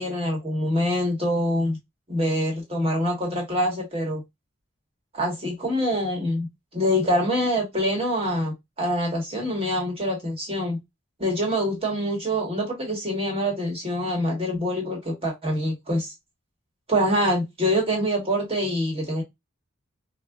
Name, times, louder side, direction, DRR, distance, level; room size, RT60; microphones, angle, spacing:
voice 1, 0.0-1.8 2.1-4.2 5.1-6.5 6.7-10.8 11.2-16.1 16.9-19.2, equal, 25° right, 1.2 m, -25 dB
3.6 x 2.3 x 2.3 m
head